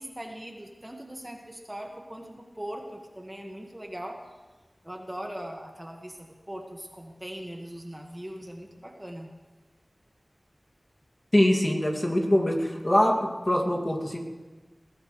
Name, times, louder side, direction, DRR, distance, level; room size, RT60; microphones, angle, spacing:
voice 1, 0.0-4.2 4.8-9.3, equal, 15° right, 1 dB, 1.7 m, -40 dB
voice 2, 11.3-13.2 13.5-14.2, left 1 dB, 30° left, 1 dB, 2.4 m, -23 dB
21.0 x 16.0 x 3.3 m, 1.3 s
wide cardioid pair, 60°, 0 cm